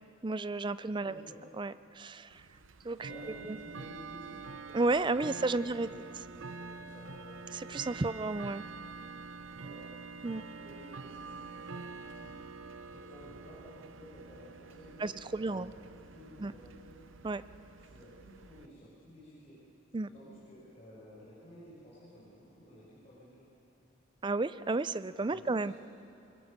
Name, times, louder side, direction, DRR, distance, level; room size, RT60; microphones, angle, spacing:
voice 1, 0.2-1.2 1.6-2.4 2.8-3.1 3.5-3.6 4.7-5.9 7.5-8.6 10.2-10.4 15.0-15.7 16.4-16.5 17.2-17.4 19.9-20.1 24.2-25.7, right 3 dB, 25° right, 14 dB, 0.4 m, -32 dB
voice 2, 1.0-1.4 3.0-4.4 5.3-6.1 6.4-7.5 9.6-9.9 10.6-12.3 12.9-17.0 17.8-19.6 20.1-23.5 25.3-25.7, equal, 30° left, -9 dB, 6.0 m, -53 dB
Bell / Tick-tock, 2.3-18.7, right 4 dB, 90° right, 0.7 m, -47 dB
25.0 x 22.5 x 6.6 m, 2.8 s
head